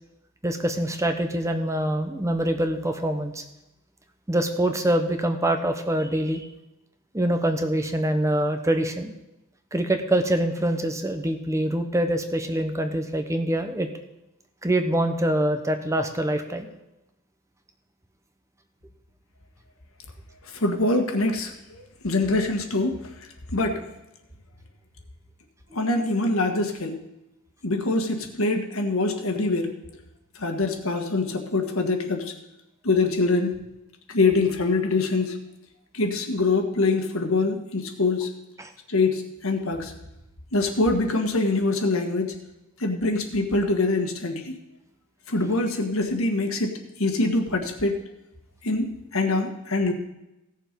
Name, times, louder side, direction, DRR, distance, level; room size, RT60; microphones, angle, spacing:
voice 1, 0.4-3.4 4.3-6.4 7.1-9.1 9.7-13.9 14.6-16.7 38.6-38.7, right 1 dB, 15° right, 6 dB, 0.9 m, -25 dB
voice 2, 20.5-23.0 23.5-23.8 25.7-27.0 27.6-29.8 30.3-32.3 32.8-33.7 34.1-35.4 35.9-38.4 38.9-39.9 40.5-42.4 42.8-44.5 45.3-48.0 48.6-49.9, left 3 dB, 70° left, 4 dB, 1.6 m, -24 dB
16.0 x 6.9 x 5.2 m, 0.92 s
head